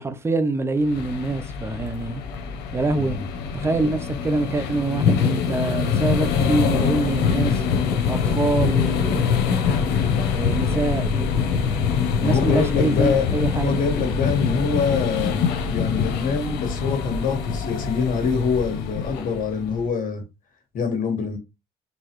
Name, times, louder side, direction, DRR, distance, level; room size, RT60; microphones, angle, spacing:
voice 1, 0.0-2.2 2.7-3.2 3.5-7.6 8.1-9.5 10.2-11.4 12.2-13.9, right 3 dB, 15° right, 0.7 m, -25 dB
sound 1, 0.8-19.9, left 6 dB, 80° left, 0.9 m, -24 dB
voice 2, 12.2-13.3 13.5-20.2 20.7-21.4, left 5 dB, 55° left, 1.6 m, -25 dB
4.6 x 3.3 x 3.1 m
cardioid pair, 110°, 17 cm